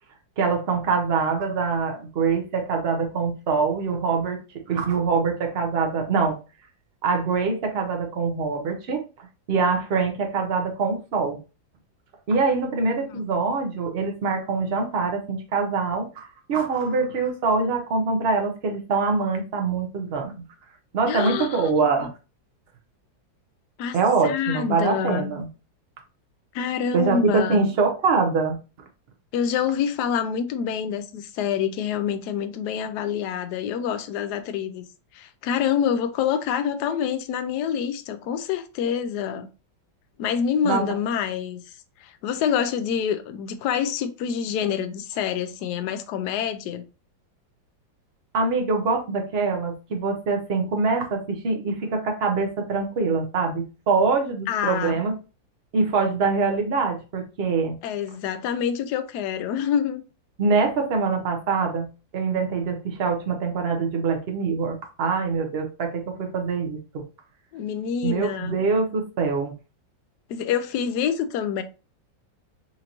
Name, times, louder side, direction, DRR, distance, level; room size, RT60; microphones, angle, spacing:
voice 1, 0.4-4.4 4.7-6.4 7.0-9.0 9.5-11.4 12.3-20.4 20.9-22.1 23.9-25.5 26.9-28.6 40.6-40.8 48.3-55.1 55.7-57.8 60.4-61.9 62.1-67.0 68.0-69.5, right 4 dB, 60° right, 0.6 m, -24 dB
voice 2, 21.1-21.7 22.0-22.1 23.8-24.0 24.2-25.3 26.5-27.7 29.3-34.8 35.1-39.5 40.2-41.7 42.0-46.8 54.5-55.0 57.8-60.0 67.5-68.5 70.3-71.6, left 8 dB, 70° left, 1.0 m, -26 dB
4.4 x 2.6 x 2.9 m
omnidirectional pair, 2.0 m